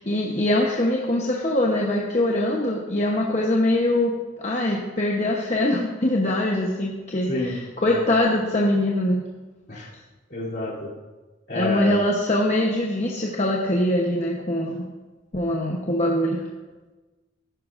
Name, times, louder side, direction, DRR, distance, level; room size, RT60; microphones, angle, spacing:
voice 1, 0.0-9.2 11.5-14.8 15.3-16.4, left 1 dB, 40° left, -2 dB, 1.0 m, -23 dB
voice 2, 10.3-10.9 11.5-12.0, left 2 dB, 60° left, -6 dB, 3.1 m, -28 dB
15.0 x 11.5 x 2.6 m, 1.2 s
head